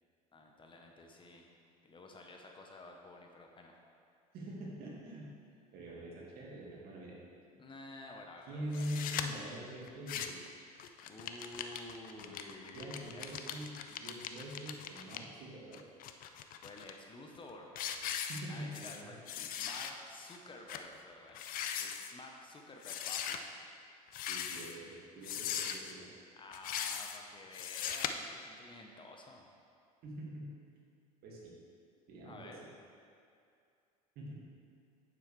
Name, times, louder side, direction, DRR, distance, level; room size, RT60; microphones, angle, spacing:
voice 1, 0.3-1.5 1.8-3.7 7.5-9.2 11.0-13.3 16.6-17.7 18.5-21.4 21.8-23.5 26.4-29.5 32.2-32.6, left 2 dB, 25° left, 1 dB, 1.0 m, -51 dB
voice 2, 4.3-5.3 5.7-7.2 8.5-10.4 12.2-12.4 12.7-15.8 18.3-19.1 24.3-26.1 30.0-30.5 31.2-31.5 32.1-32.5 34.2-34.3, equal, 50° right, -3 dB, 2.2 m, -44 dB
sound 1, 8.7-9.2 9.9-10.5 10.8-15.2 15.7-16.9 17.3-17.5 17.7-19.0 19.3-19.9 20.3-20.4 20.7-20.9 21.3-22.1 22.8-23.4 24.1-24.8 25.2-25.9 26.5-27.2 27.5-28.1, left 9 dB, 45° left, 0.6 m, -40 dB
9.0 x 7.7 x 3.4 m, 2.4 s
hypercardioid pair, 75°, 20 cm